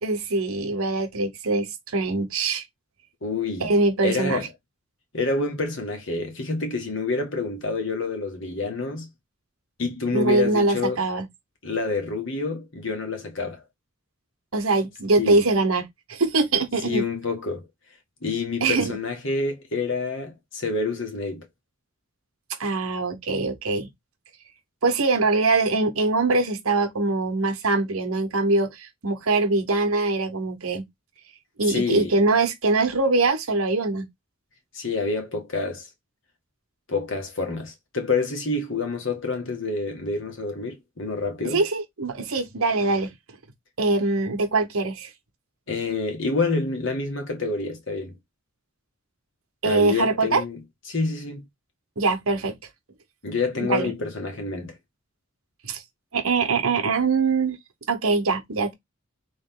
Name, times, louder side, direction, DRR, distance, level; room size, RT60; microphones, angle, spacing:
voice 1, 0.0-2.6 3.6-4.4 10.1-11.3 14.5-17.0 18.6-18.9 22.6-23.9 24.8-30.8 31.6-34.1 41.5-43.1 43.8-45.1 49.6-50.4 52.0-52.5 53.7-53.9 55.6-55.8 56.1-57.6 57.9-58.7, right 3 dB, 85° right, 1.1 m, -23 dB
voice 2, 3.2-3.7 4.0-4.5 5.1-9.1 9.8-11.0 11.6-13.6 15.2-15.4 16.8-17.7 18.2-21.5 31.6-32.1 34.7-35.9 36.9-41.6 45.7-48.1 49.6-50.6 50.9-51.4 53.2-54.7, left 3 dB, 65° left, 1.7 m, -27 dB
3.9 x 3.3 x 3.7 m
head